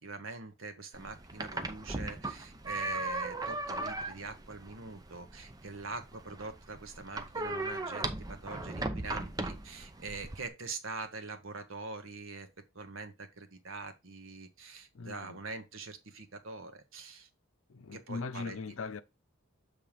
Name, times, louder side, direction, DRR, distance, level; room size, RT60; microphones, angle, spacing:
voice 1, 0.0-12.5 12.7-17.3 17.9-18.7, right 3 dB, 70° right, 1.2 m, -44 dB
sound 1, 0.9-10.5, right 2 dB, 20° right, 0.6 m, -38 dB
voice 2, 14.9-15.4 17.7-19.0, left 4 dB, 75° left, 0.6 m, -40 dB
7.4 x 3.4 x 5.0 m
head